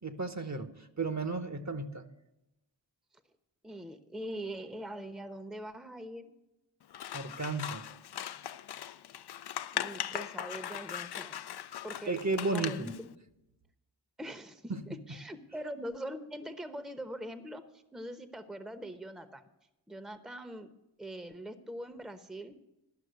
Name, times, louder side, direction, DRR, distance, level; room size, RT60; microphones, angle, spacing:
voice 1, 0.0-2.0 7.1-7.9 12.1-12.9 14.7-14.8, right 3 dB, 35° right, 9 dB, 1.1 m, -34 dB
voice 2, 3.6-6.3 9.7-11.4 11.8-13.1 14.2-19.4 19.9-20.7 21.0-22.6, right 1 dB, ahead, 10 dB, 0.9 m, -42 dB
Scissors, 6.9-13.0, left 11 dB, 60° left, 0.5 m, -39 dB
12.0 x 5.9 x 8.0 m, 0.92 s
cardioid pair, 45°, 46 cm